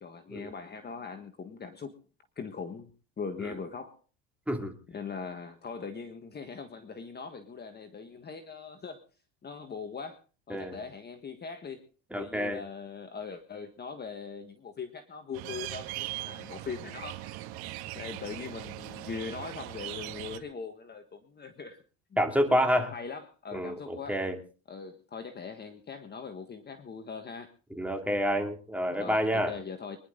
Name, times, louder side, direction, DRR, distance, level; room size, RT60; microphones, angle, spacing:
voice 1, 0.0-2.0 2.4-2.9 3.2-4.0 4.9-9.0 9.4-10.2 10.5-11.9 12.1-17.5 17.9-21.8 22.6-24.2 24.7-27.5 28.9-30.0, left 5 dB, 25° left, 1.6 m, -41 dB
voice 2, 10.5-10.8 12.1-12.6 22.2-22.9 23.5-24.4 27.8-29.5, equal, 5° right, 2.8 m, -28 dB
sound 1, 15.3-20.4, right 15 dB, 65° right, 2.1 m, -40 dB
25.0 x 11.0 x 3.9 m
cardioid pair, 125°, 40 cm